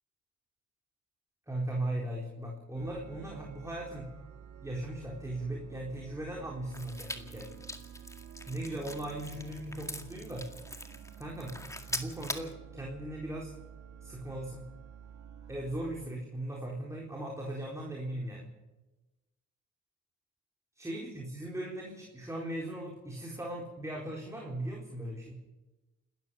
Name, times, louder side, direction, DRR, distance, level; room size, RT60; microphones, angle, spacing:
voice 1, 1.5-4.1 4.6-7.5 8.5-10.5 11.2-11.5 11.9-13.5 14.0-14.6 15.5-18.5 20.8-25.4, right 1 dB, 10° right, -2 dB, 4.1 m, -38 dB
sound 1, 2.7-16.1, right 8 dB, 65° right, 1.7 m, -50 dB
sound 2, 6.7-12.5, left 1 dB, 10° left, 2.0 m, -42 dB
28.5 x 13.5 x 7.1 m, 1.1 s
cardioid pair, 90°, 30 cm